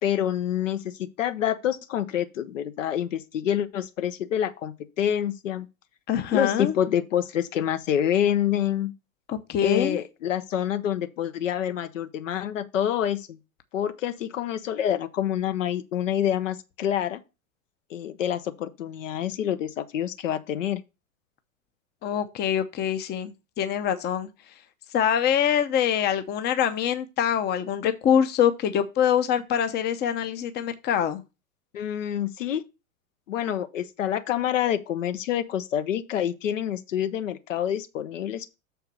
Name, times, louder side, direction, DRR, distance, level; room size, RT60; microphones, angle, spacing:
voice 1, 0.0-5.7 6.3-8.9 9.6-13.4 13.7-17.2 17.9-20.8 31.7-32.6 33.3-38.5, left 10 dB, 65° left, 0.9 m, -27 dB
voice 2, 6.1-6.7 9.3-10.0 22.0-24.3 24.9-31.2, left 9 dB, 25° left, 0.8 m, -24 dB
6.6 x 4.6 x 6.4 m
figure-of-eight pair, 90°, 41 cm